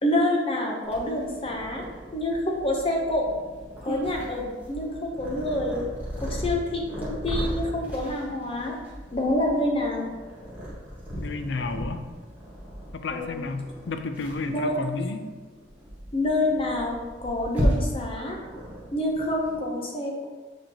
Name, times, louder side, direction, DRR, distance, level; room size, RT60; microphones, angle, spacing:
voice 1, 0.0-1.8 2.1-3.3 3.8-5.8 6.2-8.7 9.1-10.1 13.1-13.4 14.4-15.0 16.1-18.4 18.9-20.3, left 1 dB, 30° left, 0 dB, 0.8 m, -27 dB
Purr, 0.8-19.5, equal, 10° right, 1.3 m, -35 dB
voice 2, 11.2-12.0 12.9-15.2, left 3 dB, 65° left, 8 dB, 0.5 m, -31 dB
7.8 x 4.4 x 2.9 m, 1.4 s
head